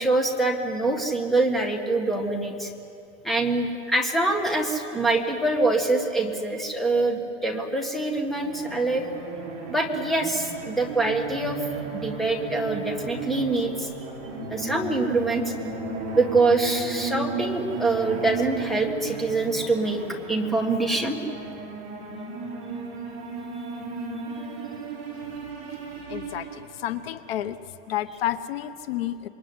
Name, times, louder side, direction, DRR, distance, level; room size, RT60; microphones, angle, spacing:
voice 1, 0.0-2.7 3.2-9.1 9.7-11.6 11.9-13.9 14.5-15.4 16.1-20.0 20.3-21.2, right 2 dB, ahead, 2 dB, 1.6 m, -24 dB
sound 1, 8.3-27.0, right 4 dB, 30° right, 5.3 m, -35 dB
voice 2, 26.1-27.6 27.9-29.3, left 12 dB, 60° left, 12 dB, 1.1 m, -30 dB
26.5 x 22.5 x 9.7 m, 2.6 s
supercardioid pair, 170°, 34 cm